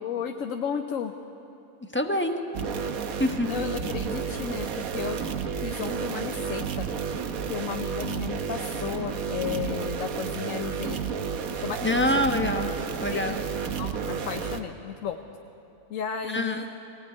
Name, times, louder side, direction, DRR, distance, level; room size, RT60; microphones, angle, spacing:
voice 1, 0.0-1.1 3.5-5.2 5.6-6.9 7.4-11.0 11.5-12.0 13.1-13.4 13.8-15.2 15.9-16.7, left 8 dB, 65° left, 5 dB, 1.2 m, -33 dB
voice 2, 1.9-2.4 3.2-3.5 11.8-12.7 13.0-13.4 16.3-16.6, left 1 dB, 10° left, 4 dB, 1.1 m, -25 dB
sound 1, 2.5-14.6, right 6 dB, 70° right, 1.4 m, -31 dB
24.5 x 17.5 x 9.5 m, 2.9 s
omnidirectional pair, 1.5 m